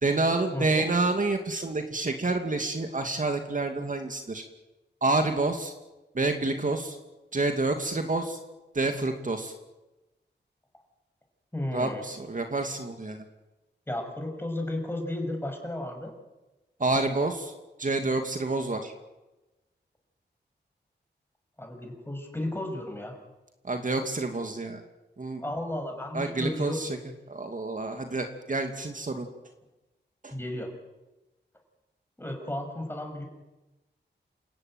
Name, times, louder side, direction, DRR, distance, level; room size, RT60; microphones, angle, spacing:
voice 1, 0.0-4.4 5.0-5.7 6.1-7.0 7.3-8.4 8.7-9.5 11.7-13.2 16.8-17.5 17.8-18.9 23.6-24.8 25.2-25.4 26.1-27.0 27.3-29.3 30.2-30.3, right 2 dB, 45° right, 5 dB, 2.5 m, -28 dB
voice 2, 0.5-0.9 11.5-12.0 13.9-16.1 21.6-23.1 25.4-26.8 30.3-30.7 32.2-33.3, left 1 dB, 10° left, 3 dB, 7.0 m, -33 dB
28.5 x 17.0 x 9.3 m, 1.0 s
wide cardioid pair, 80°, 19 cm